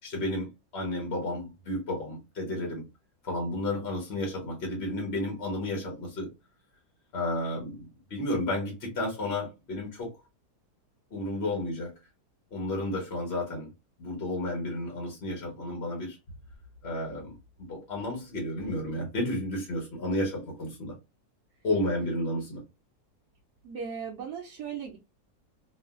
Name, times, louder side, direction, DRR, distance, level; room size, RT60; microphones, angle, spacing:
voice 1, 0.0-2.8 3.2-6.3 7.1-10.1 11.1-11.9 12.5-13.7 14.0-16.2 16.8-17.3 17.7-20.9 21.6-22.6, left 1 dB, 50° left, 1.0 m, -32 dB
voice 2, 23.6-25.0, right 7 dB, 80° right, 1.1 m, -37 dB
3.0 x 2.4 x 2.3 m
omnidirectional pair, 1.7 m